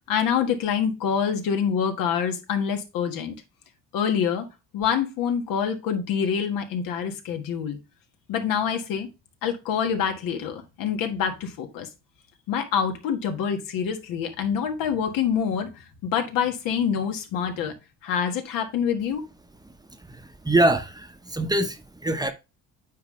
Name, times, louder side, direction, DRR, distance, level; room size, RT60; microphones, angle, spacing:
voice 1, 0.1-3.3 3.9-4.5 4.7-7.8 8.3-9.1 9.4-11.9 12.5-17.8 18.0-19.2, left 7 dB, 80° left, 1.5 m, -26 dB
voice 2, 20.0-22.3, right 1 dB, 10° right, 0.7 m, -24 dB
9.3 x 3.9 x 3.1 m
cardioid pair, 105°, 33 cm